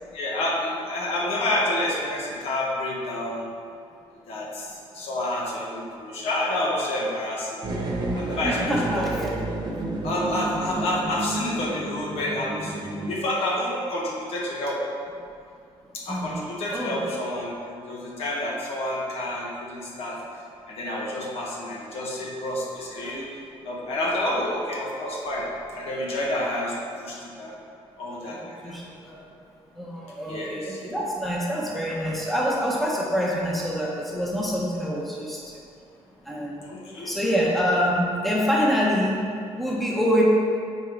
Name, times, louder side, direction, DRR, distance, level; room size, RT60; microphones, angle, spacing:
voice 1, 0.1-3.5 4.3-7.9 8.1-9.1 10.0-14.8 15.9-20.2 20.7-23.3 23.6-25.4 25.7-27.5 28.0-28.8 30.3-30.8 36.6-37.1, left 1 dB, 70° left, -4 dB, 1.7 m, -29 dB
sound 1, 7.6-13.2, right 2 dB, 45° right, 1.1 m, -31 dB
voice 2, 8.4-9.5 16.1-17.0 23.0-23.2 28.6-29.3 29.7-35.6 36.2-39.2 39.6-40.2, equal, ahead, -4 dB, 1.0 m, -26 dB
9.0 x 4.5 x 3.8 m, 2.4 s
cardioid pair, 140°, 10 cm